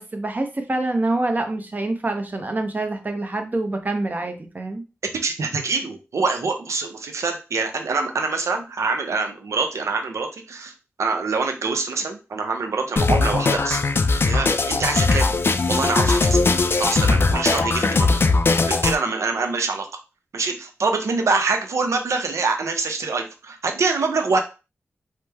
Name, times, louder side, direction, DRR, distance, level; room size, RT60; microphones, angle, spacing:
voice 1, 0.0-4.8, right 2 dB, 35° right, 5 dB, 0.7 m, -26 dB
voice 2, 5.1-10.7 11.0-13.8 14.2-15.3 15.7-16.4 16.8-18.2 18.7-19.9 20.3-24.4, right 4 dB, 75° right, 4 dB, 0.6 m, -25 dB
sound 1, 13.0-19.0, left 3 dB, 50° left, 0.4 m, -19 dB
3.1 x 2.1 x 3.3 m, 0.31 s
cardioid pair, 60°, 5 cm